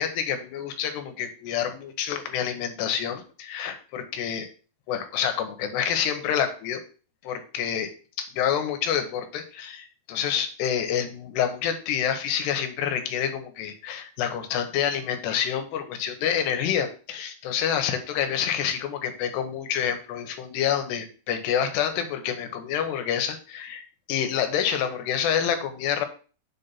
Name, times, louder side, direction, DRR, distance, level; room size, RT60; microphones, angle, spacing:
voice 1, 0.0-4.5 4.9-6.8 7.2-7.9 8.2-23.8 24.1-26.1, left 9 dB, 80° left, 7 dB, 3.1 m, -27 dB
7.4 x 4.1 x 5.7 m, 0.37 s
omnidirectional pair, 4.9 m